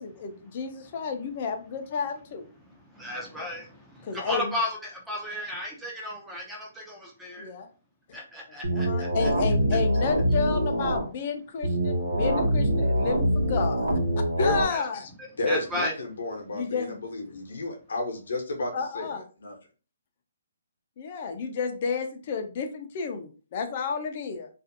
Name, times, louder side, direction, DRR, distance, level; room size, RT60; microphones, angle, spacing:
voice 1, 0.0-2.4 4.1-4.5 7.4-7.7 8.7-13.9 14.4-15.1 16.5-17.0 18.7-19.2 21.0-24.5, left 5 dB, 40° left, 5 dB, 0.5 m, -31 dB
voice 2, 2.7-7.5 8.1-9.3 14.7-14.8 15.2-15.9, left 1 dB, 5° right, -2 dB, 0.7 m, -34 dB
sound 1, 8.6-11.0 11.6-14.6, equal, 85° right, 1.1 m, -24 dB
voice 3, 15.4-19.1 19.4-19.5, left 2 dB, 75° left, 2 dB, 0.8 m, -31 dB
2.5 x 2.4 x 2.6 m, 0.36 s
hypercardioid pair, 155°, 0 cm